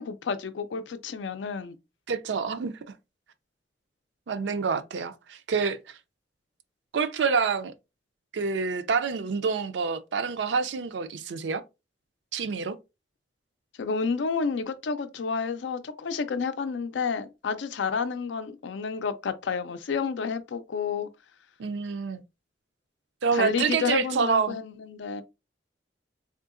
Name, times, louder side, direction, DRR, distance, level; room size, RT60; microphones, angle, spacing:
voice 1, 0.0-1.8 13.8-21.1 23.3-25.2, left 5 dB, 90° left, 0.4 m, -30 dB
voice 2, 2.1-2.7 4.3-6.0 6.9-7.7 8.3-11.6 12.3-12.8 21.6-22.2 23.2-24.6, right 5 dB, 75° right, 0.4 m, -27 dB
3.6 x 2.7 x 2.5 m
head